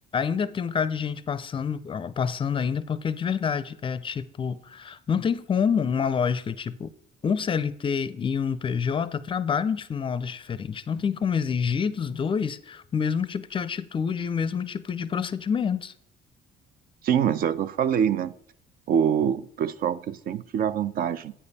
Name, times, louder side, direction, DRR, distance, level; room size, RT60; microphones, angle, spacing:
voice 1, 0.1-6.9 7.2-15.9, left 6 dB, 30° left, 0.5 m, -27 dB
voice 2, 17.0-18.3 18.9-21.3, right 8 dB, 60° right, 0.5 m, -25 dB
8.8 x 5.1 x 4.1 m
cardioid pair, 110°, 17 cm